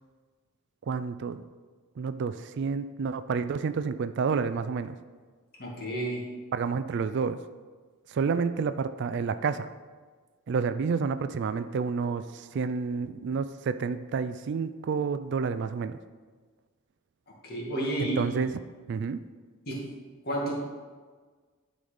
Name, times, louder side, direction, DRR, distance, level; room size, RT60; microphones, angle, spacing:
voice 1, 0.9-1.5 2.0-4.9 6.5-7.4 8.1-9.7 10.5-16.0 18.0-18.5 18.9-19.2, right 5 dB, 50° right, 12 dB, 0.3 m, -29 dB
voice 2, 5.6-6.3 17.4-18.2 19.7-19.9 20.2-20.5, right 1 dB, 45° left, -3 dB, 2.0 m, -31 dB
11.0 x 4.1 x 5.0 m, 1.5 s
head